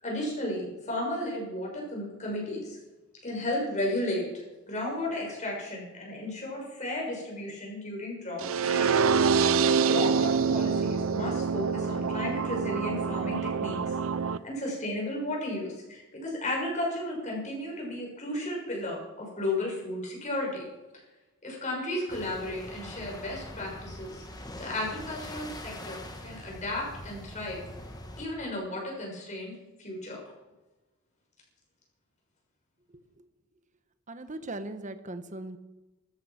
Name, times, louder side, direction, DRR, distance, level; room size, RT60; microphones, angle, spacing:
voice 1, 0.0-2.8 3.2-4.2 4.7-9.0 9.8-20.6 21.4-24.2 24.6-27.6 28.2-30.2, left 1 dB, 35° left, -2 dB, 6.6 m, -34 dB
sound 1, 8.4-14.4, right 5 dB, 70° right, 0.6 m, -26 dB
sound 2, 22.1-28.3, left 1 dB, 20° left, 1.6 m, -43 dB
voice 2, 34.1-35.6, right 2 dB, 35° right, 10 dB, 1.2 m, -38 dB
15.0 x 13.5 x 5.9 m, 1.1 s
head